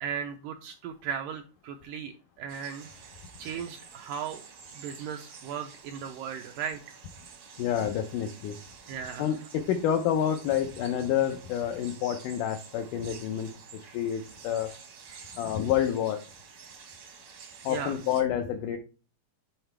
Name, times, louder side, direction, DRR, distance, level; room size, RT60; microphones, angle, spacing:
voice 1, 0.0-2.9 3.4-4.4 4.7-6.8 8.9-9.3 13.8-14.0 15.1-15.4 17.7-18.0, right 8 dB, 85° right, 6 dB, 1.9 m, -37 dB
sound 1, 2.5-18.2, right 6 dB, 65° right, 1.3 m, -49 dB
voice 2, 7.6-8.6 9.2-14.7 15.4-16.2 17.6-18.8, left 9 dB, 90° left, 6 dB, 1.8 m, -28 dB
7.5 x 5.6 x 3.3 m, 0.35 s
omnidirectional pair, 4.4 m